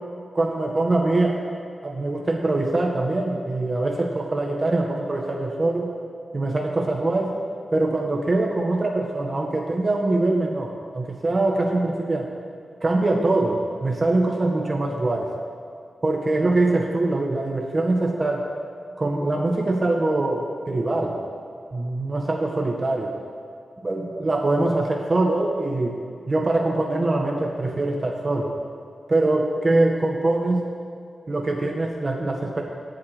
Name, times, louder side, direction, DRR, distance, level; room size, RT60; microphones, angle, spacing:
voice 1, 0.3-1.4 1.8-5.9 6.3-7.4 7.7-12.3 12.8-15.3 16.0-18.5 19.0-21.2 21.7-23.2 23.8-25.9 26.3-28.5 29.1-30.7 31.3-32.6, right 2 dB, 30° right, 1 dB, 0.7 m, -23 dB
17.5 x 7.5 x 3.1 m, 2.3 s
wide cardioid pair, 160°, 0 cm